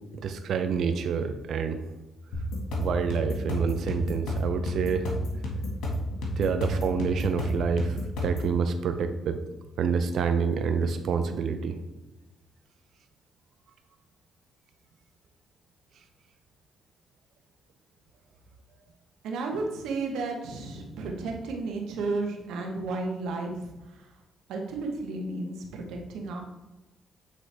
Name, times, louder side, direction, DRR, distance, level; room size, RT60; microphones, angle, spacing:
voice 1, 0.1-1.8 2.8-5.1 6.4-9.4 9.8-11.8, right 6 dB, 70° right, 8 dB, 0.6 m, -27 dB
sound 1, 2.3-8.5, equal, 85° left, 1.7 m, -31 dB
voice 2, 19.2-24.1 24.5-26.4, right 3 dB, 90° right, 2 dB, 1.1 m, -33 dB
8.1 x 3.8 x 3.4 m, 1.1 s
cardioid pair, 90°, 0 cm